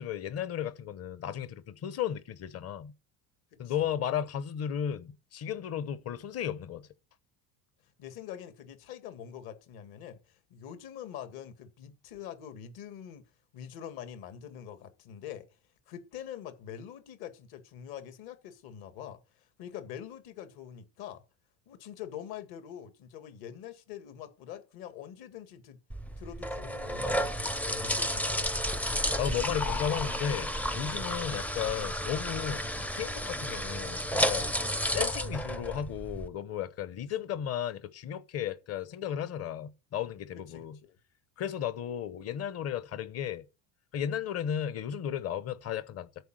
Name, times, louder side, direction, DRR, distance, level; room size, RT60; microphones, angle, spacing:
voice 1, 0.0-2.9 3.6-6.9 29.2-32.6 32.9-34.5 34.9-40.8 41.4-43.4 43.9-46.1, left 9 dB, 35° left, 1.0 m, -34 dB
voice 2, 8.0-13.2 13.5-15.5 15.9-21.2 21.7-25.8 26.2-27.3 27.6-28.7 37.3-37.4 40.5-41.0, left 9 dB, 55° left, 2.2 m, -44 dB
sound 1, 25.9-36.3, equal, 5° left, 0.5 m, -32 dB
14.0 x 4.8 x 7.7 m
cardioid pair, 155°, 45 cm